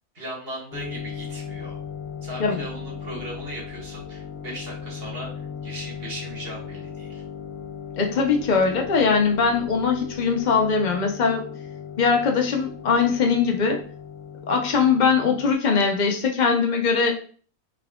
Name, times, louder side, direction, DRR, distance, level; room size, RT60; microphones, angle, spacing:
voice 1, 0.1-1.8 2.2-5.3 5.6-7.2, right 1 dB, 40° right, -3 dB, 1.6 m, -37 dB
sound 1, 0.7-15.5, left 7 dB, 80° left, 1.1 m, -37 dB
voice 2, 8.0-11.4 12.0-13.8 14.5-17.1, left 5 dB, 65° left, 2 dB, 0.4 m, -21 dB
4.5 x 3.5 x 2.3 m, 0.43 s
omnidirectional pair, 1.6 m